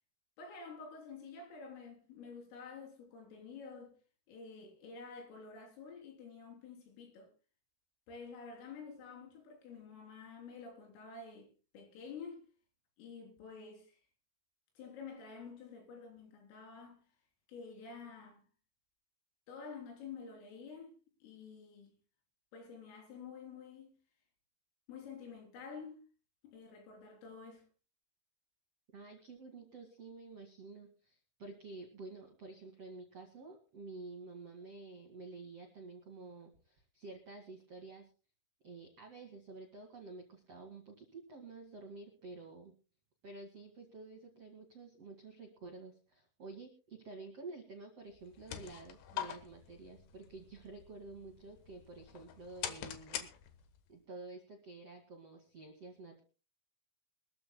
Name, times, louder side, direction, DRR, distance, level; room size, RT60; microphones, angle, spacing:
voice 1, 0.4-4.0 4.3-7.3 8.1-11.5 11.7-12.4 13.0-14.0 14.8-17.1 17.5-18.4 19.5-20.9 21.2-21.9 22.5-24.0 24.9-26.0 26.4-27.6, left 5 dB, 90° left, 6.2 m, -49 dB
voice 2, 28.9-38.1 38.6-42.7 43.2-53.3 53.9-56.2, right 3 dB, 55° right, 1.8 m, -50 dB
sound 1, 48.1-53.9, left 10 dB, 70° left, 2.9 m, -45 dB
23.5 x 14.0 x 2.2 m
omnidirectional pair, 5.7 m